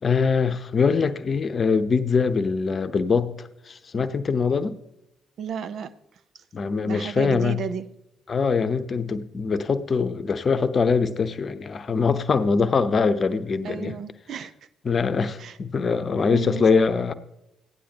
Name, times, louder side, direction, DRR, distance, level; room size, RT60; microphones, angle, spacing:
voice 1, 0.0-4.7 6.5-7.6 8.3-14.0 14.8-17.1, left 5 dB, 45° left, 0.8 m, -23 dB
voice 2, 5.4-5.9 6.8-7.9 13.6-14.5 15.4-15.6 16.2-16.9, right 7 dB, 55° right, 0.6 m, -33 dB
16.0 x 10.0 x 2.9 m
figure-of-eight pair, 40°, 0 cm